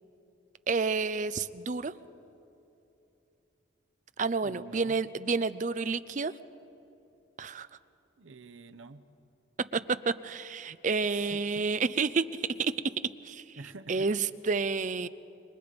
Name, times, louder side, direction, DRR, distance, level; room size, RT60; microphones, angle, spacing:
voice 1, 0.7-1.9 4.2-6.3 7.4-7.7 9.7-9.8 10.1-12.7 13.2-13.6 13.9-15.1, right 4 dB, 40° right, 14 dB, 0.5 m, -30 dB
voice 2, 4.4-5.0 8.2-9.0 11.0-11.6 13.6-14.1, right 3 dB, 80° right, 9 dB, 0.9 m, -47 dB
27.0 x 22.5 x 5.2 m, 2.9 s
head